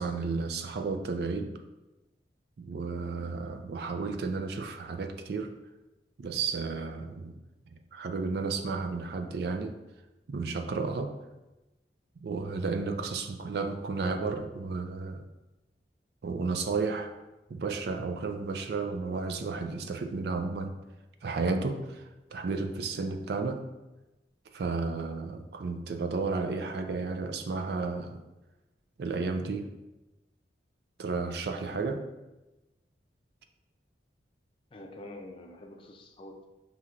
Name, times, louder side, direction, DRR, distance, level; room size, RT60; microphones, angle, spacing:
voice 1, 0.0-1.5 2.6-5.5 6.2-7.4 7.7-9.7 10.3-11.1 12.2-15.2 16.2-17.1 17.5-20.7 21.2-22.0 22.3-23.7 24.5-28.2 29.0-29.6 31.0-32.0, right 4 dB, 60° right, 6 dB, 0.4 m, -32 dB
voice 2, 34.7-36.5, left 1 dB, 30° left, 3 dB, 0.4 m, -46 dB
5.7 x 2.9 x 2.4 m, 1.0 s
head